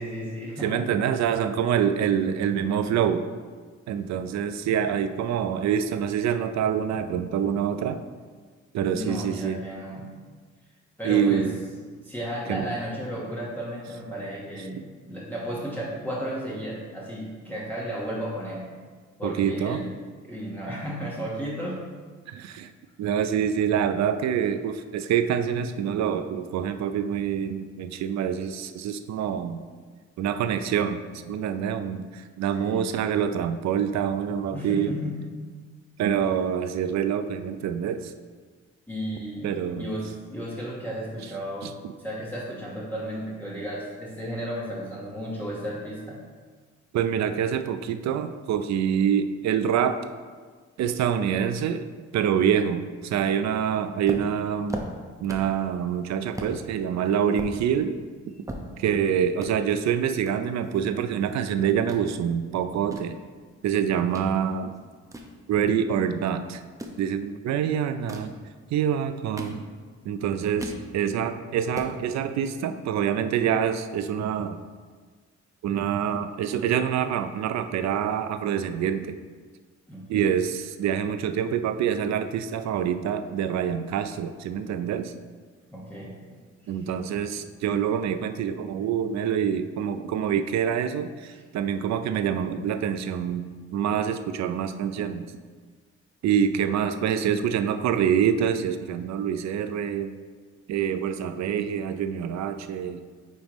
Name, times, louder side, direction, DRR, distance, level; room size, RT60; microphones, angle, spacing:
voice 1, 0.0-0.8 8.9-10.1 11.0-11.5 12.0-14.8 15.1-18.7 19.2-19.9 20.2-21.8 32.5-32.9 34.5-35.2 38.9-46.2 79.9-80.3 85.7-86.9 91.3-91.4, equal, 5° left, -7 dB, 1.3 m, -34 dB
voice 2, 0.6-3.3 3.9-8.0 8.7-9.6 11.0-11.7 12.5-12.7 19.2-19.8 22.3-22.7 23.0-29.6 30.2-34.9 36.0-38.1 39.4-39.9 41.6-41.7 46.9-50.1 50.8-51.8 52.1-54.8 55.2-58.0 58.8-63.2 63.6-64.7 65.5-66.6 67.0-68.3 68.7-69.6 70.1-74.6 75.6-79.2 80.1-85.1 86.7-93.5 93.7-95.3 96.2-100.1 100.7-103.0, right 8 dB, 65° right, 9 dB, 0.5 m, -26 dB
sound 1, 54.1-55.6 55.9-56.0 56.3-56.6 57.0-59.0 59.3-59.5 60.2-61.4 61.7-62.0 62.6-64.3 64.7-66.0 66.6-67.0 67.9-68.4 69.0-70.0 70.3-70.9 71.3-71.4 71.6-72.0, equal, 10° right, 0.7 m, -38 dB
9.2 x 3.5 x 3.0 m, 1.5 s
cardioid pair, 90°, 30 cm